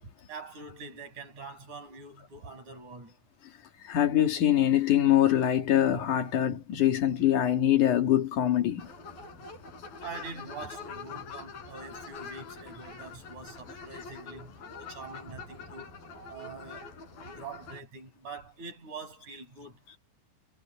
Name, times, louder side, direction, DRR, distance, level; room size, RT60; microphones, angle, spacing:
voice 1, 0.0-3.2 10.0-16.0 16.3-16.9 17.2-19.8, right 4 dB, 50° right, 9.2 m, -44 dB
voice 2, 3.9-8.9, left 11 dB, 60° left, 3.4 m, -24 dB
sound 1, 8.8-17.8, left 5 dB, 75° left, 8.3 m, -45 dB
omnidirectional pair, 4.3 m